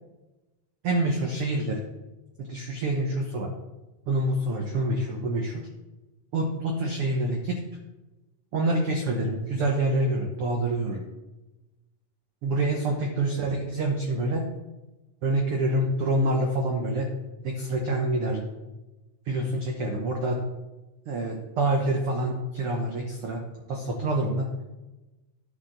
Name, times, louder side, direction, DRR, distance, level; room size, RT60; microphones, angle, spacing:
voice 1, 0.8-1.8 2.5-3.5 4.1-5.6 6.3-7.6 8.5-11.0 12.4-14.4 15.2-17.1 17.4-18.5 19.3-20.4 21.1-23.4 23.7-24.5, right 1 dB, 90° right, 1 dB, 1.2 m, -26 dB
11.0 x 6.4 x 3.9 m, 1.1 s
omnidirectional pair, 3.8 m